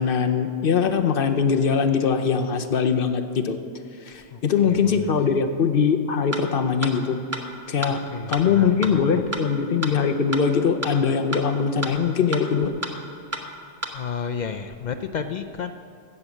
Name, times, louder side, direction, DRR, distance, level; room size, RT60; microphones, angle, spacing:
voice 1, 0.0-3.6 4.1-7.2 7.7-8.0 8.3-12.7, left 6 dB, 55° left, 8 dB, 0.8 m, -22 dB
voice 2, 4.3-5.3 7.8-9.4 13.9-15.7, left 6 dB, 70° left, 7 dB, 0.4 m, -33 dB
sound 1, 6.3-6.4 6.8-6.9 7.3-7.4 7.8-7.9 8.3-8.4 8.8-8.9 9.3-9.4 9.8-9.9 10.3-10.4 10.8-10.9 11.3-11.4 11.8-11.9 12.3-12.4 12.8-12.9 13.3-13.4 13.8-13.9, right 1 dB, 15° right, 0.8 m, -29 dB
15.5 x 6.8 x 7.2 m, 2.4 s
omnidirectional pair, 1.3 m